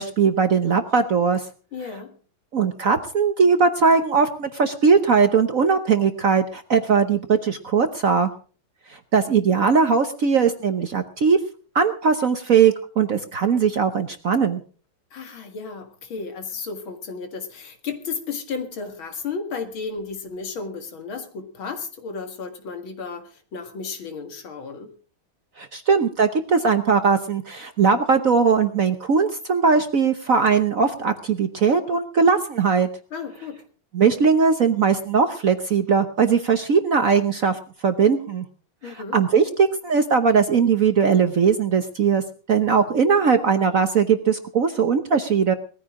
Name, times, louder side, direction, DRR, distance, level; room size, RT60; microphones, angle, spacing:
voice 1, 0.0-1.4 2.5-8.3 9.1-11.4 11.7-14.6 25.6-32.9 33.9-38.5 38.8-42.2 42.5-45.5, right 5 dB, 50° right, 8 dB, 1.1 m, -19 dB
voice 2, 1.7-2.1 15.1-24.9 33.1-33.6 38.8-39.2, left 5 dB, 70° left, 6 dB, 2.6 m, -33 dB
19.0 x 14.5 x 3.7 m, 0.39 s
omnidirectional pair, 2.3 m